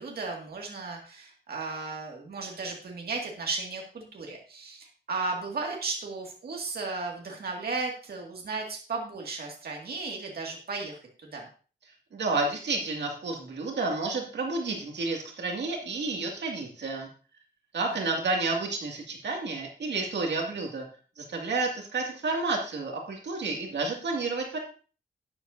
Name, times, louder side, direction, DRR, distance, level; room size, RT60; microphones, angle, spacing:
voice 1, 0.0-11.5, right 3 dB, 65° right, 0 dB, 2.0 m, -35 dB
voice 2, 12.1-17.1 17.7-20.8 21.2-24.6, right 3 dB, 85° right, 1 dB, 2.2 m, -30 dB
12.0 x 9.5 x 2.7 m, 0.38 s
wide cardioid pair, 145°, 18 cm